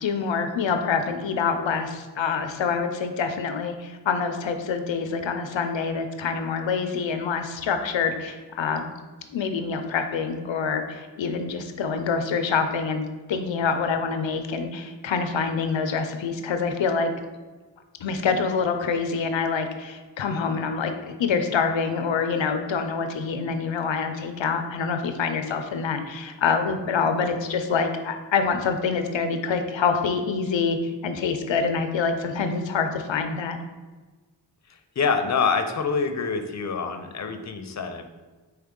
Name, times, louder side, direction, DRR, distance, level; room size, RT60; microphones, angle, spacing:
voice 1, 0.0-8.8 9.3-17.1 18.0-20.9 21.2-33.6, left 5 dB, 85° left, 7 dB, 0.5 m, -26 dB
voice 2, 35.0-38.0, left 5 dB, 40° left, 7 dB, 0.5 m, -26 dB
4.4 x 3.2 x 3.7 m, 1.3 s
cardioid pair, 40°, 44 cm